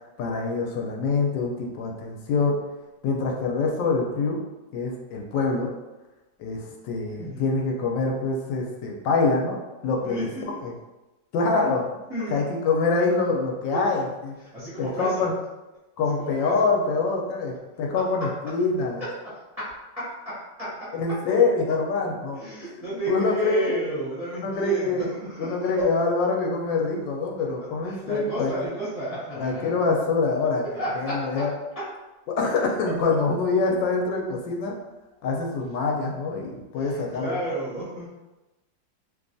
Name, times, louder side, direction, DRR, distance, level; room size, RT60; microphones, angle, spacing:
voice 1, 0.2-2.6 3.0-4.4 4.7-5.7 6.4-9.6 9.8-10.3 10.6-10.7 11.3-11.8 12.3-14.3 14.8-15.3 16.0-19.0 20.9-22.4 23.1-23.7 24.4-25.1 25.4-28.5 29.4-30.6 31.0-31.5 32.3-34.7 35.2-37.4, left 3 dB, 80° left, 0 dB, 1.2 m, -25 dB
voice 2, 10.0-10.6 12.1-12.5 13.7-13.9 14.4-15.3 16.0-16.7 19.0-21.2 22.3-26.1 27.8-29.8 30.7-31.5 31.7-31.8 36.7-38.1, right 1 dB, 35° right, -12 dB, 0.5 m, -33 dB
3.1 x 2.3 x 2.5 m, 1.1 s
omnidirectional pair, 2.0 m